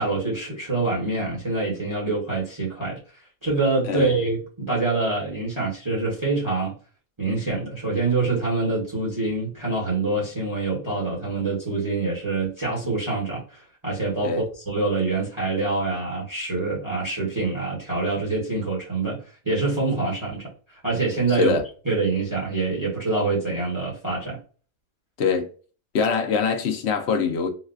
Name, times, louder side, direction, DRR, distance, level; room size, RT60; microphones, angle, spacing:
voice 1, 0.0-3.0 3.4-6.8 7.2-20.4 20.8-21.5 21.8-24.4, right 3 dB, 25° right, 1.1 m, -25 dB
voice 2, 21.3-21.7 25.2-25.5 25.9-27.5, left 5 dB, 60° left, 0.8 m, -23 dB
4.0 x 2.1 x 2.4 m
omnidirectional pair, 1.4 m